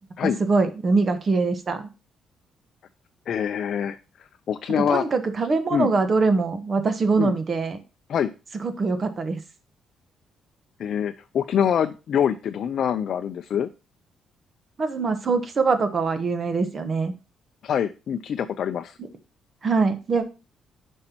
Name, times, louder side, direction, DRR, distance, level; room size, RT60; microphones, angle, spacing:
voice 1, 0.2-1.9 4.9-7.8 8.6-9.4 14.8-17.1 19.6-20.2, right 4 dB, 40° right, 9 dB, 1.1 m, -23 dB
voice 2, 3.3-4.0 4.5-5.0 5.7-5.9 7.2-7.3 8.1-8.3 10.8-13.7 17.6-19.0, left 8 dB, 60° left, 8 dB, 0.4 m, -25 dB
9.5 x 5.5 x 2.9 m, 0.30 s
cardioid pair, 90°, 0 cm